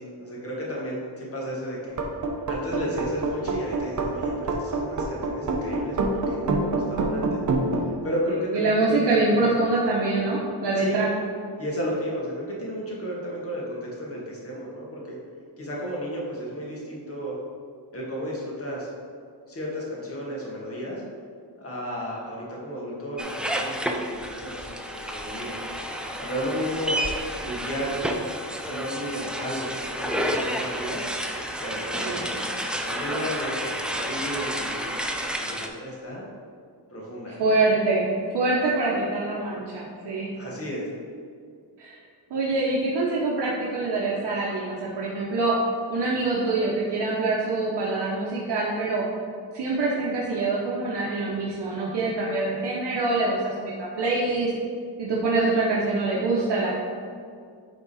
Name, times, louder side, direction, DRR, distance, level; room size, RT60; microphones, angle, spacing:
voice 1, 0.0-2.0 2.5-7.4 7.7-9.5 10.8-11.0 11.6-15.2 15.6-17.4 17.9-18.9 19.5-21.0 21.6-25.5 26.2-27.0 27.4-27.9 28.6-31.0 31.6-36.2 36.9-37.4 40.3-40.9, equal, 35° left, -4 dB, 1.6 m, -33 dB
sound 1, 1.9-7.8, right 2 dB, 45° right, 0.8 m, -26 dB
voice 2, 8.3-11.1 32.0-32.2 37.4-38.0 38.3-40.3 41.8-42.0 42.3-45.5 45.9-49.0 49.5-54.5 55.0-56.7, right 3 dB, 70° right, -5 dB, 1.0 m, -25 dB
sound 2, 23.2-35.7, equal, ahead, 0.3 m, -30 dB
8.6 x 3.7 x 4.1 m, 2.2 s
wide cardioid pair, 150°, 42 cm